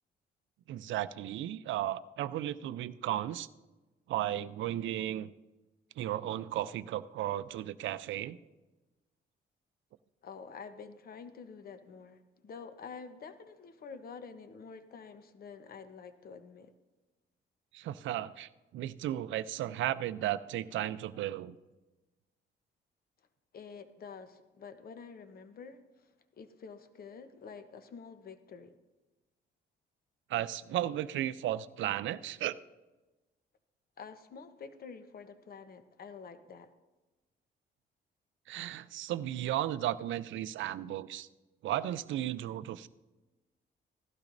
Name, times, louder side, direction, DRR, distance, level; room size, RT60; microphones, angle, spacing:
voice 1, 0.7-3.5 4.1-5.3 6.0-8.4 17.7-21.5 30.3-32.6 38.5-41.3 41.6-42.9, right 12 dB, 75° right, 15 dB, 0.5 m, -35 dB
voice 2, 10.2-16.7 23.5-28.7 34.0-36.7, left 5 dB, 50° left, 9 dB, 0.9 m, -48 dB
16.0 x 12.0 x 2.6 m, 1.1 s
cardioid pair, 90°, 20 cm